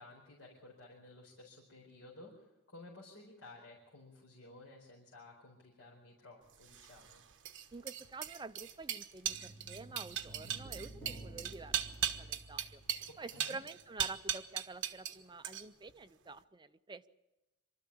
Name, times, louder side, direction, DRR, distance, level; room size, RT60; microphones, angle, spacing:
voice 1, 0.0-7.2 13.3-13.6, left 2 dB, 60° left, -3 dB, 4.4 m, -55 dB
sound 1, 6.6-15.2 15.4-15.9, right 10 dB, 55° right, 1.3 m, -38 dB
voice 2, 7.7-11.8 12.2-12.8 13.2-17.1, right 3 dB, 20° right, 10 dB, 0.6 m, -48 dB
sound 2, 9.3-13.7 14.0-14.1, right 1 dB, 5° left, 3.9 m, -52 dB
24.5 x 13.0 x 8.7 m, 1.0 s
head